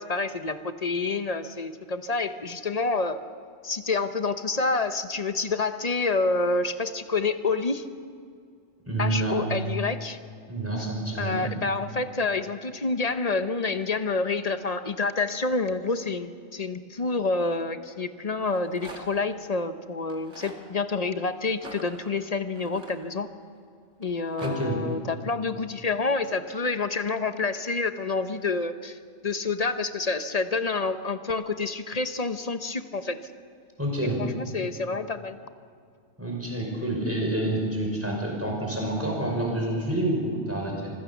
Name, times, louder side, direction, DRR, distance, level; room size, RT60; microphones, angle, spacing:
voice 1, 0.0-3.2 3.6-7.8 9.0-10.2 11.2-23.3 24.0-33.2 34.2-35.4, left 3 dB, 35° left, 10 dB, 0.8 m, -28 dB
voice 2, 8.9-9.4 10.5-11.5 24.4-24.8 33.8-34.2 36.2-40.9, right 1 dB, 10° right, -1 dB, 5.3 m, -28 dB
Rattle, 18.4-19.3 20.0-20.6 21.5-23.5 24.0-24.5, right 2 dB, 60° right, 2.6 m, -44 dB
26.0 x 16.0 x 7.2 m, 2.3 s
omnidirectional pair, 1.4 m